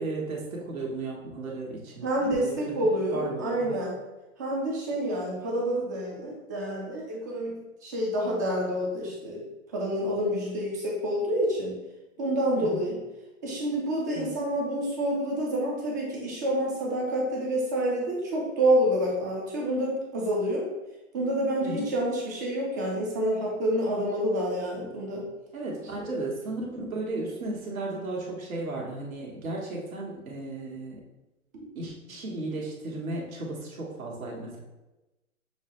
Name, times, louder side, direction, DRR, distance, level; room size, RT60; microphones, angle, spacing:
voice 1, 0.0-2.1 2.4-3.8 12.5-12.8 14.1-14.3 21.6-21.9 25.5-31.0 31.7-34.6, right 2 dB, 75° right, -2 dB, 1.4 m, -35 dB
voice 2, 2.0-3.9 4.4-9.4 9.7-11.8 12.2-13.0 13.4-20.7 21.1-25.2 26.0-26.1, right 1 dB, 15° right, -2 dB, 0.3 m, -28 dB
6.3 x 2.2 x 3.0 m, 1.0 s
hypercardioid pair, 120°, 42 cm